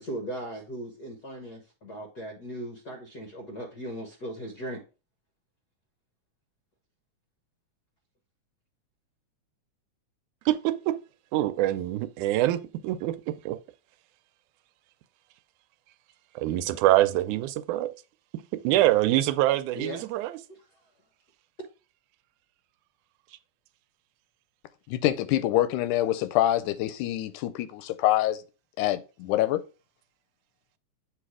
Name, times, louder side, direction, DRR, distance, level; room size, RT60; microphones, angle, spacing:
voice 1, 0.0-4.8 18.8-18.9 19.7-20.0 20.5-20.6, right 1 dB, 65° left, 0.9 m, -38 dB
voice 2, 10.5-11.0 11.3-13.2 13.5-13.6 16.4-17.9 18.6-20.4, right 15 dB, 85° right, 2.0 m, -24 dB
voice 3, 24.9-28.4 28.8-29.6, left 14 dB, 90° left, 2.1 m, -25 dB
7.9 x 3.3 x 4.8 m
omnidirectional pair, 3.4 m